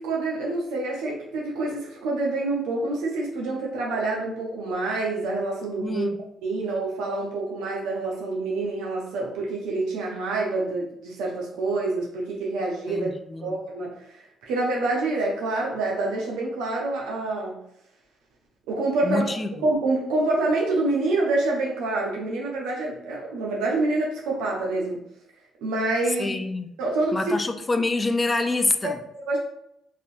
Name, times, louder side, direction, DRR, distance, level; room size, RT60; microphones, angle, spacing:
voice 1, 0.0-6.1 6.4-13.1 13.4-17.6 18.7-19.3 19.6-25.0 25.6-26.3 26.8-27.4 29.1-29.4, right 2 dB, 85° right, 0.7 m, -27 dB
voice 2, 5.8-6.2 12.9-13.6 19.0-19.5 26.2-26.7 27.1-29.0, left 3 dB, 30° left, 0.3 m, -26 dB
3.3 x 2.7 x 2.6 m
supercardioid pair, 65°, 0 cm